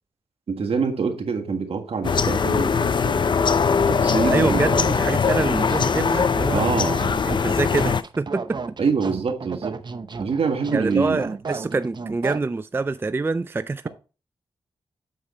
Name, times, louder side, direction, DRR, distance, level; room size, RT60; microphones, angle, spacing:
voice 1, 0.5-3.3 3.8-5.0 6.5-7.0 8.8-9.8 10.2-11.2, right 5 dB, 65° right, 1.6 m, -25 dB
sound 1, 2.0-8.0, left 5 dB, 50° left, 0.5 m, -21 dB
voice 2, 4.3-6.6 7.2-8.6 10.7-13.9, right 3 dB, 20° right, 0.3 m, -25 dB
sound 2, 5.2-12.4, right 4 dB, 45° right, 0.8 m, -34 dB
8.1 x 4.8 x 4.2 m
cardioid pair, 55°, 10 cm